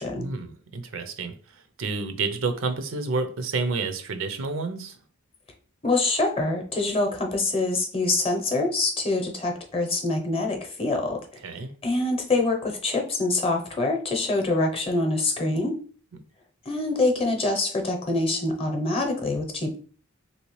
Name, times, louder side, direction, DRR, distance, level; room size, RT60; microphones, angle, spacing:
voice 1, 0.2-5.0 11.4-11.7, right 4 dB, 75° right, 8 dB, 0.5 m, -30 dB
voice 2, 5.8-11.2 11.8-15.8 16.7-19.8, left 2 dB, 30° left, 2 dB, 0.7 m, -25 dB
3.2 x 2.8 x 3.1 m, 0.42 s
head